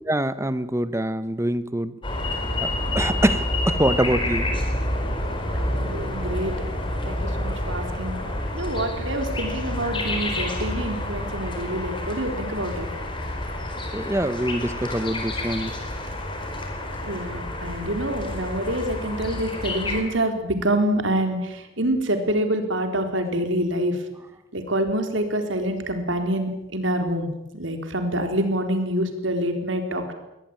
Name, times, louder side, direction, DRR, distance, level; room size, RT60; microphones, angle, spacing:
voice 1, 0.1-2.0 2.6-4.6 13.9-15.7, right 1 dB, 15° right, 14 dB, 1.0 m, -25 dB
sound 1, 2.0-20.0, left 1 dB, 25° left, 4.6 m, -28 dB
voice 2, 5.6-6.5 7.0-8.1 8.5-12.9 17.0-24.0 24.5-27.3 27.5-30.1, right 1 dB, 70° right, 6 dB, 4.0 m, -26 dB
22.5 x 18.5 x 9.0 m, 0.91 s
head